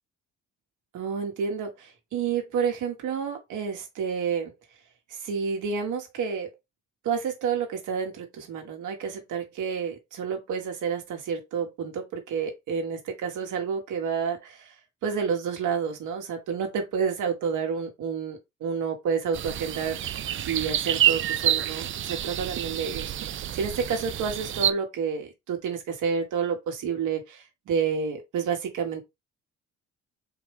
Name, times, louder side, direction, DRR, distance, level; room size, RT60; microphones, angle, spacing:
voice 1, 0.9-4.5 5.1-6.5 7.0-14.7 15.0-29.0, right 6 dB, 80° right, 1.6 m, -30 dB
sound 1, 19.3-24.7, right 11 dB, 45° right, 0.4 m, -28 dB
4.5 x 3.1 x 3.4 m
cardioid pair, 90°, 30 cm